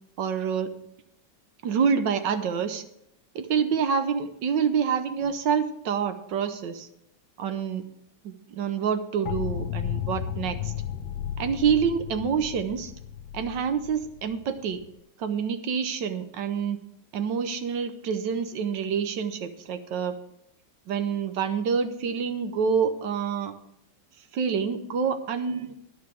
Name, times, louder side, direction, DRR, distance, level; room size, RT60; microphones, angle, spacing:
voice 1, 0.2-0.7 1.6-2.8 3.3-6.9 7.4-7.8 8.2-10.7 11.4-12.9 13.3-14.8 15.2-16.8 17.1-20.2 20.9-23.5 24.3-25.7, right 6 dB, 70° right, 9 dB, 1.4 m, -27 dB
sound 1, 9.3-14.9, left 10 dB, 70° left, 1.2 m, -34 dB
11.0 x 4.8 x 8.3 m, 0.79 s
omnidirectional pair, 2.2 m